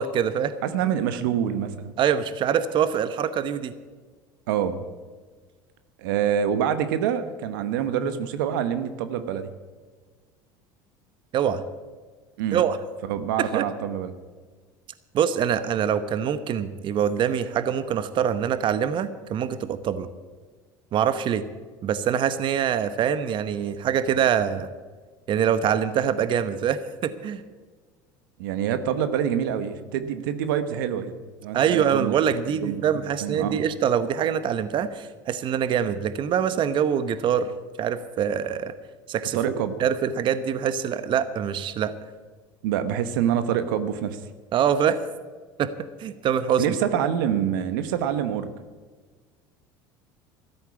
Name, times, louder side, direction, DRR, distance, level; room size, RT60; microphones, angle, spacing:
voice 1, 0.0-0.6 2.0-3.7 11.3-11.6 12.5-12.8 13.4-13.7 15.1-20.1 20.9-21.4 21.8-24.7 25.3-27.4 31.5-37.5 37.8-38.7 39.1-39.4 39.8-41.9 44.5-45.0 45.6-45.7 46.0-46.6, right 8 dB, 50° right, 13 dB, 0.9 m, -24 dB
voice 2, 0.6-1.9 4.5-4.9 6.0-9.5 12.4-12.6 13.1-14.1 28.4-32.1 32.5-32.8 33.2-33.6 39.3-39.7 42.6-44.2 46.6-48.5, right 9 dB, 85° right, 11 dB, 1.1 m, -26 dB
14.0 x 8.2 x 9.6 m, 1.4 s
supercardioid pair, 90°, 11 cm